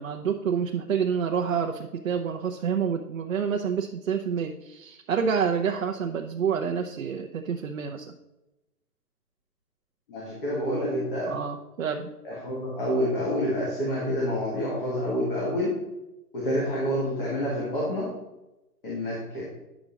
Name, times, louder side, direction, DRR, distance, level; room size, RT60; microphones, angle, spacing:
voice 1, 0.0-8.1 11.3-12.1, right 7 dB, 55° right, 4 dB, 0.6 m, -28 dB
voice 2, 10.1-11.3 12.2-15.7 16.3-18.1 18.8-19.4, equal, 35° left, -5 dB, 1.9 m, -28 dB
9.6 x 6.1 x 3.9 m, 0.96 s
hypercardioid pair, 180°, 49 cm